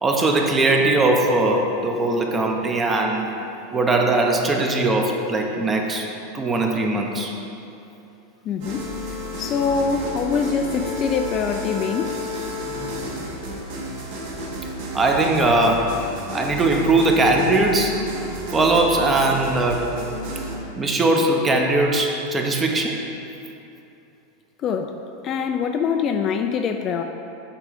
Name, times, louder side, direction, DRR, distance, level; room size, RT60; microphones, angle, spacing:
voice 1, 0.0-3.4 3.7-6.1 6.3-7.3 14.9-15.9 16.3-18.0 18.5-19.9 20.8-23.0, right 2 dB, 15° right, 2 dB, 0.7 m, -20 dB
voice 2, 8.5-12.2 24.6-27.0, left 6 dB, 30° left, 5 dB, 0.3 m, -24 dB
sound 1, 8.6-20.6, left 1 dB, 60° right, 1.3 m, -32 dB
8.3 x 3.7 x 5.0 m, 2.8 s
supercardioid pair, 145°, 0 cm